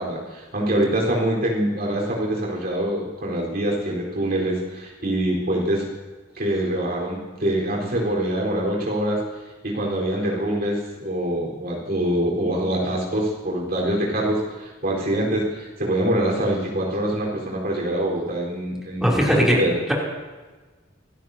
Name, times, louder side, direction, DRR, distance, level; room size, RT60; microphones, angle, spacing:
voice 1, 0.0-5.9 6.3-9.2 9.6-19.7, right 1 dB, 55° right, -3 dB, 4.3 m, -24 dB
voice 2, 19.0-19.6, equal, 5° right, -4 dB, 3.1 m, -18 dB
26.0 x 13.5 x 2.8 m, 1.3 s
head